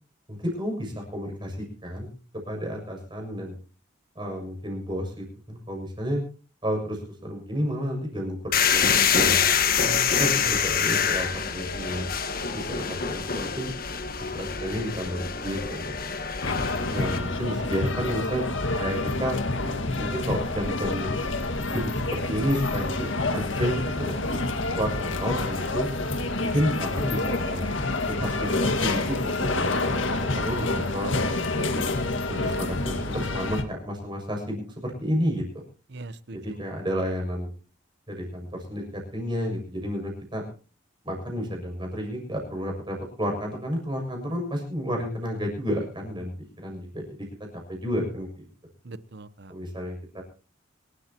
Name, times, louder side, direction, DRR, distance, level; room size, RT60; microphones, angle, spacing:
voice 1, 0.3-2.1 2.5-3.5 4.1-6.2 6.6-9.5 10.2-12.1 12.5-13.7 14.2-15.9 16.9-19.4 20.0-21.2 21.7-24.4 24.7-25.9 26.5-27.7 28.1-31.8 32.3-35.6 36.3-37.5 38.1-40.4 41.0-46.3 46.6-47.3 47.7-48.3 49.5-50.2, equal, 25° right, 2 dB, 6.8 m, -31 dB
sound 1, 8.5-17.2, left 7 dB, 45° left, 1.5 m, -25 dB
voice 2, 9.8-10.5 30.8-30.9 31.1-31.3 35.9-36.4 48.8-49.5, right 2 dB, 55° right, 15 dB, 0.8 m, -39 dB
sound 2, 16.4-33.6, left 2 dB, 70° left, 1.9 m, -28 dB
25.5 x 13.5 x 2.9 m, 0.37 s
head